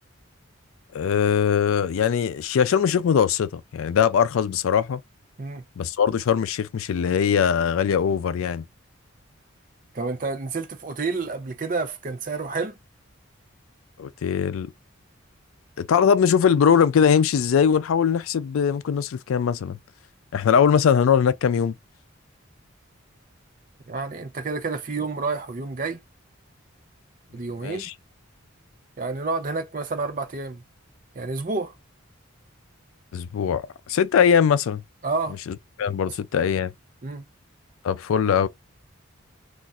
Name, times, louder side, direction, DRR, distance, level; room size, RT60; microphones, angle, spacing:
voice 1, 0.9-5.0 5.8-8.6 14.0-14.7 15.8-19.8 20.3-21.7 27.6-27.9 33.1-34.8 35.5-36.7 37.8-38.5, left 7 dB, 80° left, 0.4 m, -21 dB
voice 2, 9.9-12.8 23.9-26.0 27.3-27.9 29.0-30.6 31.1-31.7 35.0-35.4 37.0-37.2, right 3 dB, 40° right, 0.6 m, -29 dB
2.5 x 2.4 x 4.0 m
head